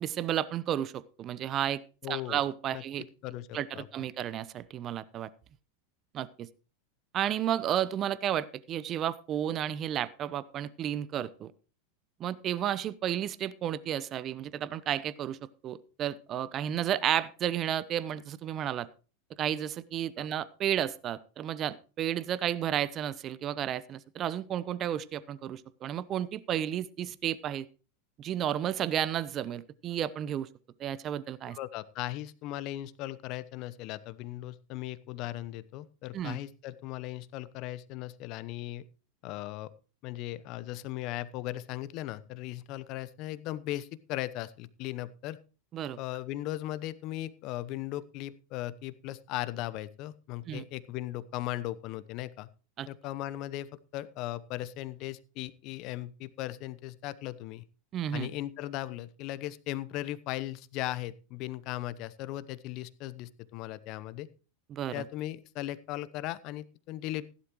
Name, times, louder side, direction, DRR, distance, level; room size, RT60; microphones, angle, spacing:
voice 1, 0.0-1.8 2.1-3.0 3.5-5.3 6.1-6.5 7.1-11.5 12.2-15.4 15.6-18.9 19.4-27.7 28.2-30.5 30.8-31.6 36.1-36.4 45.7-46.0 50.5-50.6 52.8-52.9 57.9-58.3 64.7-65.0, right 10 dB, 35° right, 18 dB, 0.8 m, -32 dB
voice 2, 2.0-2.4 2.7-2.8 3.2-3.9 20.2-20.3 31.5-38.8 39.2-39.7 40.0-45.4 46.0-52.5 52.9-57.6 58.1-64.3 64.9-67.3, left 15 dB, 50° left, 16 dB, 0.9 m, -38 dB
16.0 x 11.5 x 3.1 m, 0.36 s
hypercardioid pair, 90°, 0 cm